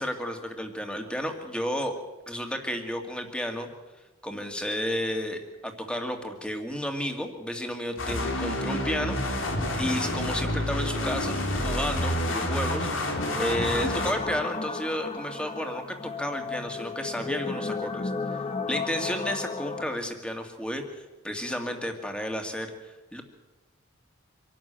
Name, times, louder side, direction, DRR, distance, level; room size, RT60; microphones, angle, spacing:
voice 1, 0.0-1.9 2.3-3.7 4.2-9.2 9.8-18.1 18.7-22.7 23.1-23.2, equal, 5° left, 4 dB, 2.2 m, -32 dB
sound 1, 8.0-14.1, left 1 dB, 85° left, 3.8 m, -28 dB
sound 2, 13.1-20.0, left 4 dB, 30° left, 1.0 m, -34 dB
25.5 x 12.5 x 8.9 m, 1.2 s
head